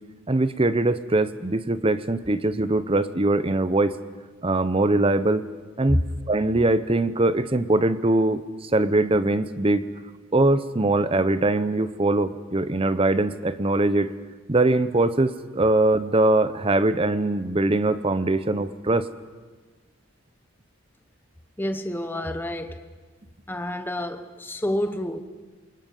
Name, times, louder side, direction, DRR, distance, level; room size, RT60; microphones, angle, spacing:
voice 1, 0.3-3.9 4.4-5.4 5.8-6.0 6.3-9.8 10.3-14.1 14.5-19.1, right 2 dB, 25° right, 0.7 m, -22 dB
voice 2, 21.6-22.9 23.5-25.2, left 1 dB, 10° left, 0.8 m, -28 dB
28.5 x 24.0 x 5.5 m
head